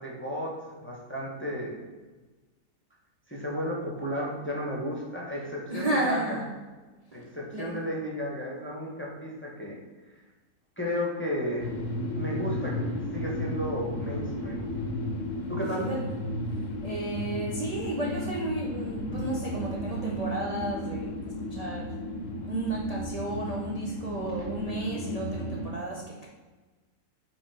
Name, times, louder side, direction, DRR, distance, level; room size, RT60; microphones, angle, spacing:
voice 1, 0.0-1.9 3.3-6.4 7.1-9.8 10.8-11.7 12.1-12.8 13.1-14.7 15.5-15.9, equal, 10° left, -3 dB, 1.0 m, -33 dB
voice 2, 5.7-6.5 7.1-7.8 15.5-16.1 16.8-22.0 22.3-26.3, right 2 dB, 35° right, -3 dB, 0.6 m, -33 dB
sound 1, 11.6-25.7, left 1 dB, 55° left, 1.1 m, -34 dB
6.3 x 3.7 x 4.9 m, 1.2 s
omnidirectional pair, 1.7 m